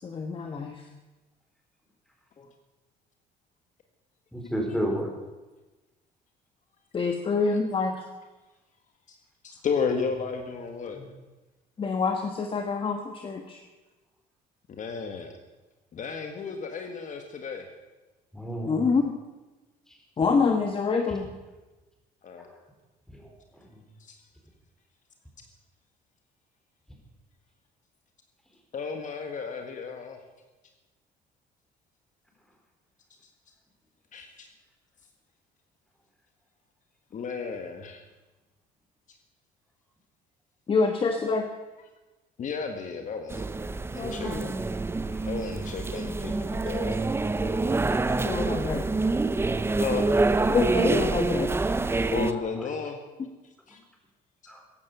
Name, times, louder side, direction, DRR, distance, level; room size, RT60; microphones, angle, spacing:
voice 1, 0.0-0.8 2.4-2.5 6.9-8.0 11.8-13.6 18.6-19.2 20.2-21.3 40.7-41.4 44.0-44.4 47.4-47.5 48.1-48.8 50.5-51.5, left 4 dB, 30° left, 4 dB, 1.3 m, -26 dB
voice 2, 4.3-5.1 10.9-11.1 18.3-18.8 23.1-23.3 45.1-45.3 51.7-51.9 54.5-54.6, equal, 5° left, 1 dB, 4.3 m, -31 dB
voice 3, 9.4-11.0 14.7-15.3 15.9-17.7 22.2-22.5 24.0-24.2 28.7-30.2 34.1-34.5 37.1-38.0 42.4-43.5 43.9-44.5 45.3-47.0 49.7-50.1 52.1-53.0 53.4-53.8, left 5 dB, 50° left, 4 dB, 1.7 m, -33 dB
sound 1, 43.3-52.3, right 3 dB, 15° right, 0.6 m, -26 dB
15.0 x 11.0 x 6.8 m, 1.2 s
cardioid pair, 110°, 17 cm